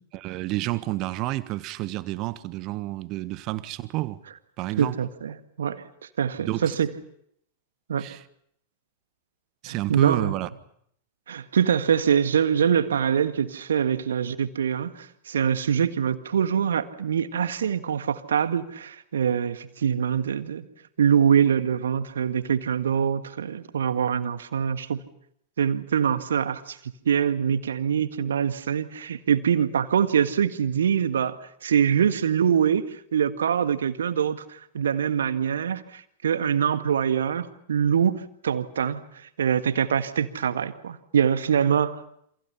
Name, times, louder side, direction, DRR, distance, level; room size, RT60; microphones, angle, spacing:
voice 1, 0.1-4.2 4.6-5.0 6.4-6.8 8.0-8.2 9.6-10.5, right 17 dB, 40° right, 1.4 m, -30 dB
voice 2, 4.8-5.8 6.2-6.9 7.9-8.1 9.7-10.3 11.3-20.6 21.0-25.0 25.6-31.4 31.6-42.0, right 8 dB, 65° right, 1.7 m, -24 dB
28.5 x 27.0 x 5.8 m
figure-of-eight pair, 90°, 0 cm